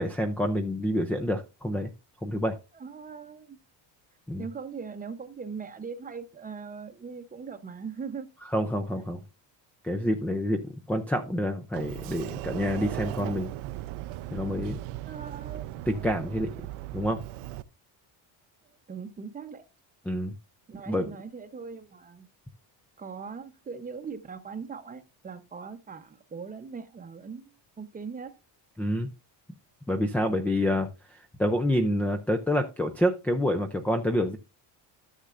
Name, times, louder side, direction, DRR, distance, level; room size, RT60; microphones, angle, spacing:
voice 1, 0.0-1.9 2.2-2.6 4.3-4.4 8.5-9.2 9.8-13.5 14.3-14.8 15.9-16.5 16.9-17.2 20.1-20.4 20.9-21.1 28.8-29.1 29.9-30.9 31.4-34.4, equal, 5° left, 0.3 m, -27 dB
voice 2, 2.7-3.6 4.4-8.3 15.1-15.7 18.9-19.7 20.7-22.3 23.0-28.4, right 5 dB, 20° right, 0.7 m, -40 dB
Sliding door, 11.7-17.6, right 15 dB, 85° right, 0.7 m, -37 dB
13.5 x 6.6 x 2.5 m
cardioid pair, 165°, 47 cm